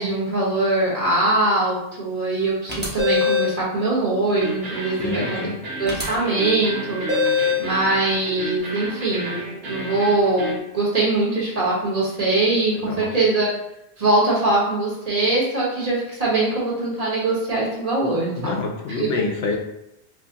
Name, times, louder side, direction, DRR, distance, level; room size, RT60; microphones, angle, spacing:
voice 1, 0.0-5.5 5.8-9.4 9.7-13.5 14.0-18.6 19.0-19.1, right 2 dB, 35° right, -6 dB, 1.2 m, -22 dB
sound 1, 2.7-3.6 5.9-6.0 7.1-7.7, left 5 dB, 10° right, 0.6 m, -21 dB
sound 2, 4.4-10.6, right 2 dB, 70° right, 1.0 m, -32 dB
voice 2, 5.0-5.6 12.7-13.1 18.4-19.6, left 3 dB, 80° left, 2 dB, 0.8 m, -27 dB
4.7 x 2.1 x 2.7 m, 0.83 s
omnidirectional pair, 1.1 m